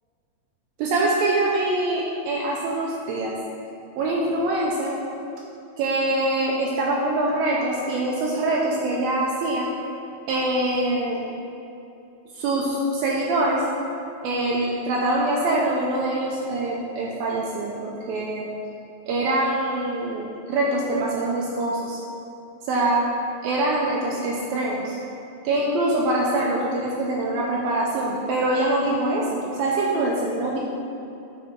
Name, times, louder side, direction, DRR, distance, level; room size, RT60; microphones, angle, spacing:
voice 1, 0.8-3.4 4.0-5.0 5.8-9.7 10.3-11.2 12.4-13.6 14.2-18.5 19.1-22.0 22.7-23.1 23.4-25.0 25.4-30.6, right 2 dB, 90° right, -3 dB, 2.1 m, -24 dB
8.9 x 4.4 x 4.4 m, 2.7 s
omnidirectional pair, 5.0 m